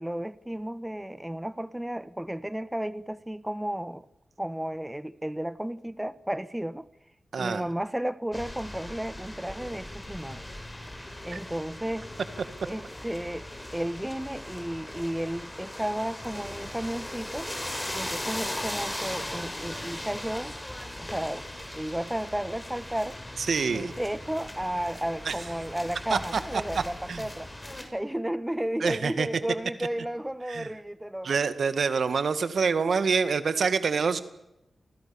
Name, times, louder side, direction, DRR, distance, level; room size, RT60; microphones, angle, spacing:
voice 1, 0.0-4.1 4.4-6.9 7.4-10.4 11.2-12.1 12.7-13.5 13.7-17.5 17.9-20.6 21.0-21.5 21.7-23.2 23.7-27.5 27.9-31.4, right 1 dB, 10° right, 1.1 m, -33 dB
voice 2, 7.3-7.7 11.3-11.4 23.4-23.9 25.3-25.4 26.1-26.2 27.1-27.3 28.8-29.3 30.5-30.7 31.2-34.2, right 5 dB, 75° right, 2.0 m, -26 dB
sound 1, 8.3-27.8, left 1 dB, 15° left, 6.2 m, -38 dB
28.5 x 20.0 x 7.1 m
cardioid pair, 55°, 0 cm